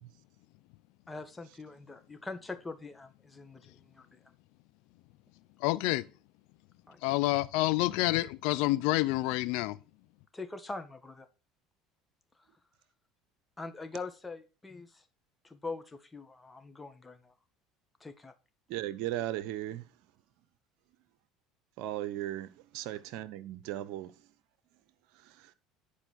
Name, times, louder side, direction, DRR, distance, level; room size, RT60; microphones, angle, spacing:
voice 1, 1.1-4.2 6.9-7.3 10.3-11.3 13.6-15.0 15.4-17.3 18.0-18.3, left 3 dB, 15° left, 1.7 m, -43 dB
voice 2, 5.6-6.1 7.0-9.8, left 19 dB, 70° left, 0.7 m, -28 dB
voice 3, 18.7-19.8 21.8-22.5 22.7-24.1, right 13 dB, 70° right, 1.0 m, -36 dB
10.5 x 5.0 x 6.4 m
supercardioid pair, 85°, 0 cm